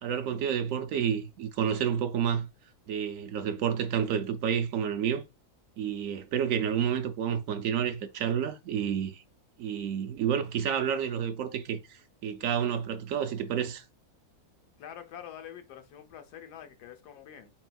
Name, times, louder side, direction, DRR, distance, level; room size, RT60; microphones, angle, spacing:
voice 1, 0.0-2.5 2.9-5.2 5.8-9.2 9.6-13.8, right 8 dB, 65° right, 0.9 m, -30 dB
voice 2, 14.8-17.5, left 9 dB, 90° left, 1.3 m, -46 dB
4.3 x 3.9 x 2.3 m
omnidirectional pair, 1.7 m